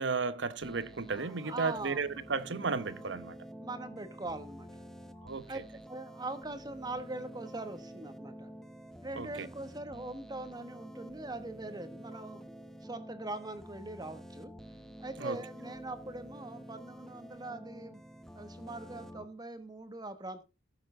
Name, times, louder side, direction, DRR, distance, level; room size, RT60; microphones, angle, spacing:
voice 1, 0.0-3.4 5.2-5.5 9.1-9.5 15.2-15.4, right 4 dB, 75° right, 0.9 m, -34 dB
sound 1, 0.6-19.2, equal, 5° left, 0.9 m, -49 dB
voice 2, 1.1-2.0 3.6-4.8 5.5-5.6 5.9-8.5 9.0-12.5 12.8-14.5 15.0-18.0 18.3-20.4, right 2 dB, 20° right, 1.3 m, -42 dB
13.5 x 7.4 x 3.8 m
head